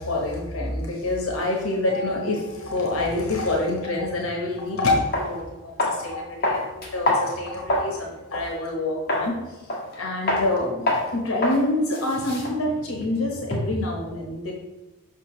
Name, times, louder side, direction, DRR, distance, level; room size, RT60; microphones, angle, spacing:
voice 1, 0.0-9.4 10.0-14.5, left 2 dB, 85° left, 0 dB, 1.1 m, -26 dB
sound 1, 4.6-4.7 5.1-5.3 5.8-6.1 6.4-7.9 8.3-8.5 9.1-9.3 9.7-10.0 10.3-10.5 10.9-11.1 11.4-11.6 11.9-13.8, left 1 dB, 45° left, 1.6 m, -25 dB
6.7 x 5.8 x 3.1 m, 1.1 s
head